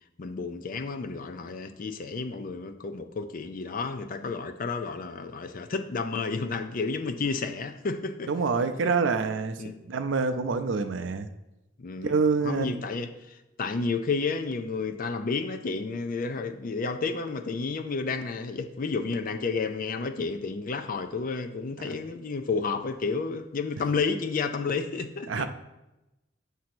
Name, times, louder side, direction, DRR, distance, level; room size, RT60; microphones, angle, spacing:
voice 1, 0.2-8.3 8.8-8.9 9.6-9.8 11.8-12.1 12.4-25.5, left 4 dB, 45° left, 0.5 m, -31 dB
voice 2, 8.3-9.6 9.9-11.3 12.0-12.8 21.9-22.0 25.3-25.5, right 4 dB, 70° right, 0.5 m, -26 dB
7.5 x 2.8 x 6.0 m
head